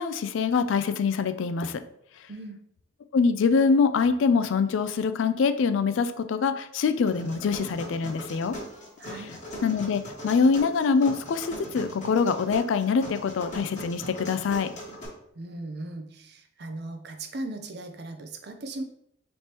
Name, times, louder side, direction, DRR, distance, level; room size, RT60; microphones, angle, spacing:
voice 1, 0.0-1.8 3.1-8.6 9.6-14.7, left 5 dB, 75° left, 11 dB, 0.3 m, -24 dB
sound 1, 7.1-15.1, equal, 40° left, 1.2 m, -40 dB
voice 2, 9.0-9.4 15.3-18.8, right 2 dB, 55° right, 5 dB, 0.5 m, -38 dB
4.4 x 3.2 x 2.9 m, 0.70 s
head